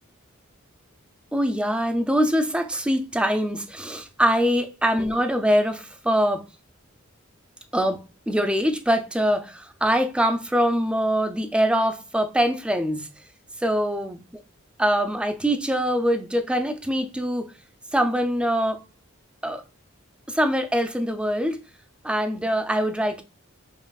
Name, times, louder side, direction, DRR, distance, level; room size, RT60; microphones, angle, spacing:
voice 1, 1.3-6.4 7.7-13.1 13.6-14.2 14.8-17.5 17.9-18.8 19.4-19.6 20.3-21.6 22.0-23.2, equal, 5° right, 0.3 m, -23 dB
5.4 x 2.4 x 2.3 m
head